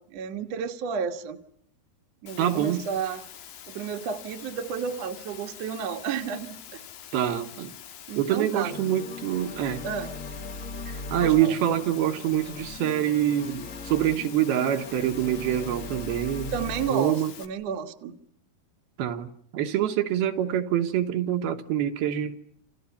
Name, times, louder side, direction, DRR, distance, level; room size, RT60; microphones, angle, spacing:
voice 1, 0.0-1.4 2.2-3.2 3.7-6.8 8.1-8.8 9.8-10.1 11.2-11.6 16.5-18.1, right 6 dB, 55° right, 2.0 m, -32 dB
Water, 2.3-17.5, left 10 dB, 85° left, 4.0 m, -45 dB
voice 2, 2.4-2.9 7.1-7.8 8.2-9.9 10.9-16.5 16.9-17.3 19.0-22.4, right 11 dB, 75° right, 3.1 m, -26 dB
sound 1, 8.7-16.9, left 4 dB, 40° left, 1.2 m, -39 dB
29.5 x 29.0 x 5.7 m
omnidirectional pair, 4.6 m